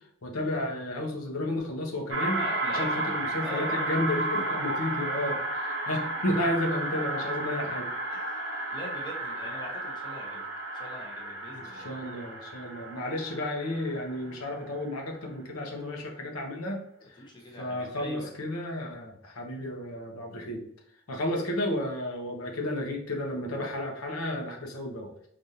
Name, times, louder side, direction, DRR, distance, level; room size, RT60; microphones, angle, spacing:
voice 1, 0.2-2.4 2.7-7.9 11.6-16.8 17.6-20.6 21.1-25.1, left 1 dB, 85° left, 1 dB, 0.8 m, -32 dB
sound 1, 2.1-14.8, right 2 dB, 60° right, 0.9 m, -33 dB
voice 2, 2.3-5.0 8.1-11.9 17.2-18.3, left 1 dB, 20° left, -1 dB, 0.7 m, -43 dB
4.9 x 2.5 x 2.7 m, 0.69 s
head